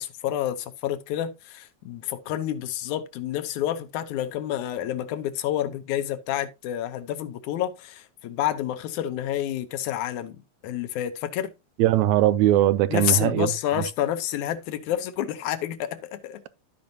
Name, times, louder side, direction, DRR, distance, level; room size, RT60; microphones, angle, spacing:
voice 1, 0.0-10.4 10.6-11.5 12.9-16.4, left 11 dB, 90° left, 2.3 m, -29 dB
voice 2, 11.8-13.5, right 13 dB, 80° right, 1.9 m, -20 dB
14.0 x 5.3 x 2.7 m
omnidirectional pair, 3.3 m